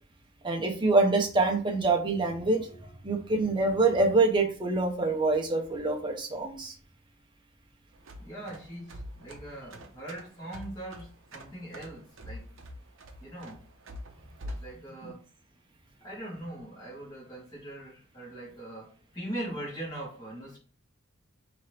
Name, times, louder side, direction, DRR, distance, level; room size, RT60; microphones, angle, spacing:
voice 1, 0.4-2.7 3.0-6.7 15.0-15.1, right 3 dB, 20° right, 2 dB, 0.7 m, -25 dB
sound 1, 7.9-14.7, equal, 60° right, 0.7 m, -45 dB
voice 2, 8.2-12.6 13.2-13.6 14.4-15.2 16.0-20.6, right 1 dB, 20° left, -7 dB, 2.2 m, -41 dB
4.3 x 3.0 x 3.2 m, 0.38 s
head